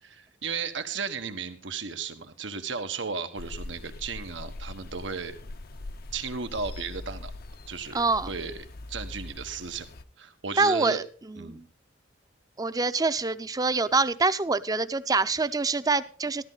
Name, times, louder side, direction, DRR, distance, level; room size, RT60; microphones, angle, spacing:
voice 1, 0.0-5.3 6.1-7.3 7.7-9.9 10.2-11.0 11.3-11.6, right 5 dB, 90° right, 8 dB, 1.3 m, -35 dB
sound 1, 3.3-10.0, left 2 dB, 55° left, 0.7 m, -42 dB
voice 2, 7.9-8.3 10.6-11.6 12.6-16.4, right 3 dB, 20° right, 13 dB, 0.6 m, -25 dB
13.5 x 13.0 x 4.0 m, 0.39 s
head